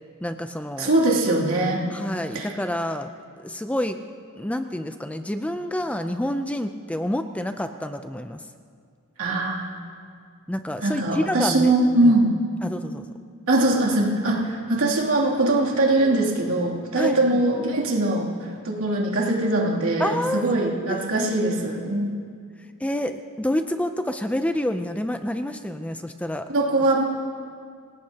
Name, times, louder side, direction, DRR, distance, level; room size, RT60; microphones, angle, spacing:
voice 1, 0.2-0.9 1.9-3.1 3.4-4.0 4.4-8.4 10.5-11.7 12.0-12.1 12.6-13.1 17.0-17.4 20.0-20.4 20.9-21.3 22.8-26.4, left 1 dB, 5° left, 8 dB, 0.4 m, -28 dB
voice 2, 0.8-1.8 2.3-2.5 9.2-9.6 10.8-12.3 13.5-22.1 26.5-27.0, right 2 dB, 70° right, -3 dB, 2.8 m, -22 dB
27.0 x 18.5 x 2.9 m, 2.1 s
head